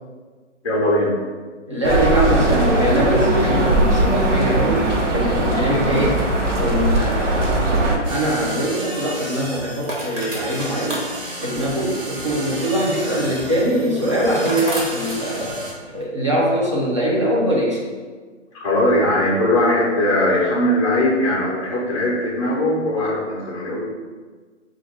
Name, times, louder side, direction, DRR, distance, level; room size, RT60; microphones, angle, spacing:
voice 1, 0.6-1.1 18.5-23.8, left 1 dB, 25° left, -5 dB, 0.5 m, -20 dB
voice 2, 1.7-6.2 6.6-11.0 11.4-15.6 15.9-17.8, right 1 dB, 25° right, -5 dB, 0.4 m, -22 dB
sound 1, 1.8-8.0, right 1 dB, 70° right, 1.1 m, -19 dB
sound 2, 8.0-15.7, right 1 dB, 45° right, 1.2 m, -33 dB
sound 3, 8.4-16.0, right 1 dB, 90° right, 1.2 m, -35 dB
4.1 x 2.4 x 3.3 m, 1.4 s
hypercardioid pair, 160°, 38 cm